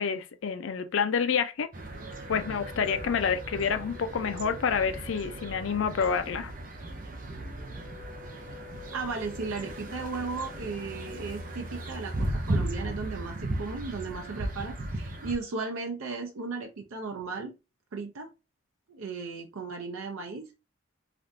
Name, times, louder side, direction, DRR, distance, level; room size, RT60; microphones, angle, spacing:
voice 1, 0.0-1.7 2.3-6.5, left 6 dB, 70° left, 0.4 m, -28 dB
sound 1, 1.7-15.4, right 1 dB, 40° right, 0.6 m, -36 dB
sound 2, 1.9-12.3, left 8 dB, 5° right, 1.4 m, -50 dB
voice 2, 8.9-17.5 17.9-18.3 18.9-20.5, right 4 dB, 85° right, 0.5 m, -36 dB
3.3 x 2.4 x 2.5 m
head